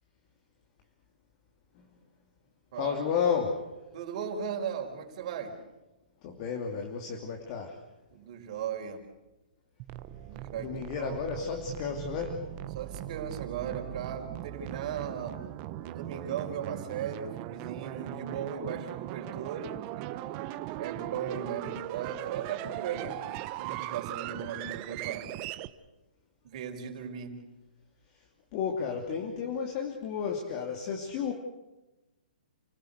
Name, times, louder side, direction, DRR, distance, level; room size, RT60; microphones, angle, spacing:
voice 1, 2.8-3.7 6.2-7.8 10.6-12.5 28.5-31.3, left 6 dB, 35° left, 3 dB, 2.9 m, -32 dB
voice 2, 3.9-5.6 8.1-9.1 10.2-11.2 12.7-15.4 15.8-20.1 20.7-23.3 23.6-25.3 26.4-27.4, right 7 dB, 45° right, 4 dB, 4.6 m, -37 dB
sound 1, 9.8-25.7, right 14 dB, 30° right, 1.0 m, -39 dB
29.5 x 16.0 x 8.1 m, 1.0 s
hypercardioid pair, 145°, 5 cm